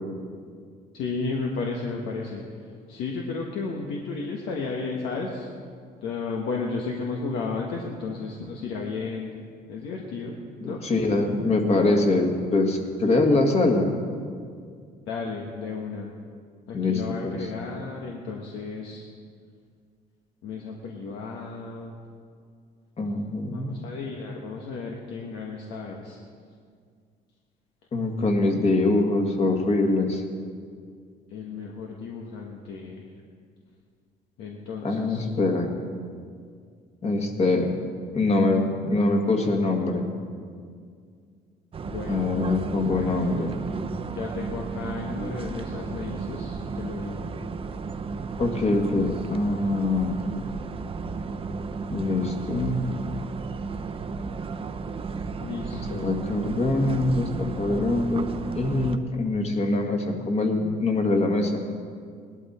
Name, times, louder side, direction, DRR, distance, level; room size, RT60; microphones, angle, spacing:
voice 1, 0.9-2.4 2.9-5.5 6.0-9.3 9.7-10.4 10.6-10.8 15.1-16.1 16.7-19.0 20.4-21.9 23.5-26.2 31.3-33.0 34.4-35.3 41.9-42.3 42.9-43.4 44.1-47.3 55.4-56.2, left 4 dB, 85° left, 0 dB, 1.4 m, -33 dB
voice 2, 10.6-13.9 16.7-17.4 23.0-23.8 27.9-30.2 34.8-35.7 37.0-37.7 38.1-40.1 42.1-43.5 48.4-50.2 51.9-52.8 55.7-58.3 58.6-61.6, left 2 dB, 40° left, 3 dB, 1.9 m, -24 dB
sound 1, 41.7-59.0, right 4 dB, 35° right, 0.8 m, -34 dB
18.5 x 12.0 x 4.4 m, 2.1 s
cardioid pair, 110°, 17 cm